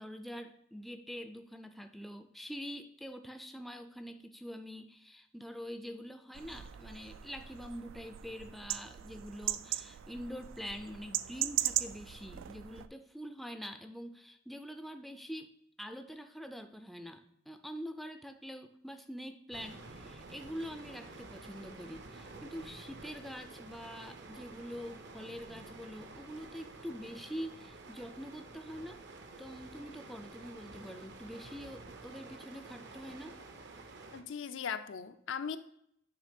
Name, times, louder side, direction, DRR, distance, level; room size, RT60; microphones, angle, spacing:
voice 1, 0.0-15.5 15.8-29.0 29.4-33.4, equal, ahead, 8 dB, 0.3 m, -45 dB
sound 1, 6.3-12.9, right 13 dB, 85° right, 0.3 m, -38 dB
sound 2, 19.5-34.2, right 3 dB, 60° right, 0.7 m, -50 dB
voice 2, 34.1-35.6, left 7 dB, 80° left, 10 dB, 0.5 m, -38 dB
9.0 x 3.3 x 5.1 m, 0.73 s
head